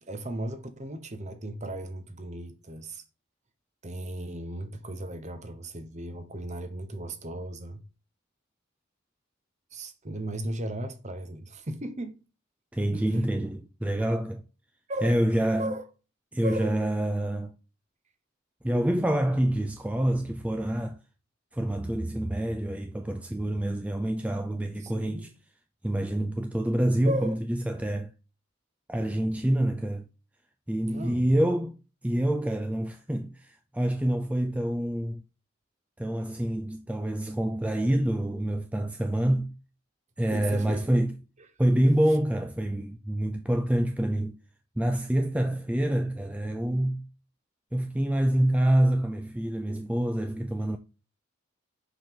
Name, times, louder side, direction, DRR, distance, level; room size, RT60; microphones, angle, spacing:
voice 1, 0.0-3.0 3.8-7.8 9.7-12.2 12.9-13.3 14.9-15.2 15.6-15.8 16.4-16.9 24.8-25.3 27.1-27.4 30.9-31.3 40.3-40.8, right 1 dB, 35° right, 0.9 m, -36 dB
voice 2, 12.7-14.4 15.0-15.8 16.3-17.5 18.6-21.0 21.5-25.3 25.8-28.1 28.9-30.1 30.7-31.7 32.0-35.2 36.0-39.5 40.2-41.1 41.6-44.4 44.8-47.1 47.7-50.8, right 1 dB, 5° right, 0.3 m, -27 dB
5.9 x 5.0 x 3.6 m
head